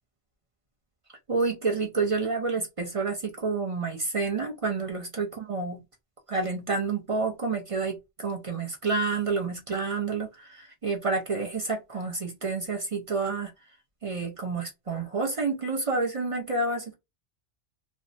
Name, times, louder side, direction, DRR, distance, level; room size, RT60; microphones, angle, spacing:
voice 1, 1.3-5.8 6.3-13.5 14.0-16.9, right 4 dB, 45° right, 0.4 m, -29 dB
2.6 x 2.1 x 2.6 m
omnidirectional pair, 1.3 m